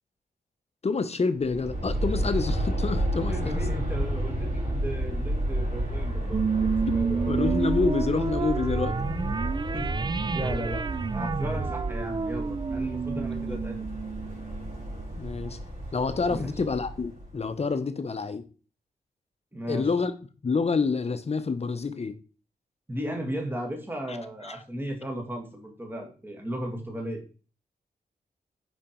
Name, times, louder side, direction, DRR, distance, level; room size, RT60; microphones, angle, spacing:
voice 1, 0.8-3.6 7.3-9.0 13.1-13.6 15.2-15.6 15.9-18.4 19.7-20.1 20.4-22.2 24.1-24.2 24.4-24.6, left 4 dB, 40° left, 0.8 m, -28 dB
Aircraft, 1.4-17.4, right 1 dB, 50° right, 4.0 m, -31 dB
voice 2, 3.3-7.5 9.7-9.9 10.3-13.9 16.3-16.5 19.5-19.9 22.9-27.2, right 1 dB, 15° right, 2.0 m, -35 dB
sound 1, 6.3-15.1, right 5 dB, 30° right, 0.3 m, -30 dB
5.2 x 5.0 x 4.4 m
cardioid pair, 65°, 16 cm